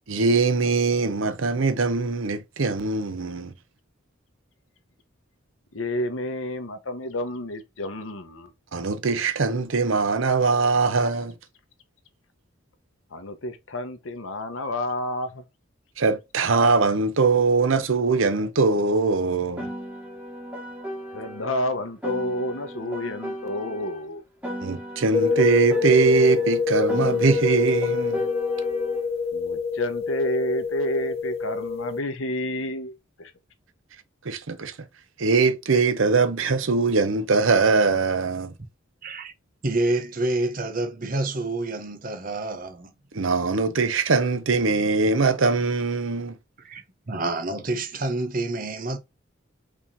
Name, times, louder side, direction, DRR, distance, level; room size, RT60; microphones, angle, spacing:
voice 1, 0.1-3.5 8.7-11.3 16.0-19.7 24.6-28.3 34.3-34.7 35.2-38.5 43.1-46.3, right 4 dB, 80° right, 0.8 m, -22 dB
voice 2, 5.7-8.5 13.1-15.4 21.1-24.2 29.3-32.9 33.2-33.3, left 1 dB, 85° left, 1.0 m, -30 dB
Piano, 19.6-24.0 24.4-29.0, equal, 5° right, 1.8 m, -37 dB
sound 1, 25.1-32.0, left 5 dB, 30° left, 0.5 m, -26 dB
voice 3, 39.0-39.3 39.6-42.9 46.6-49.0, right 2 dB, 45° right, 0.9 m, -28 dB
4.9 x 3.6 x 2.7 m
head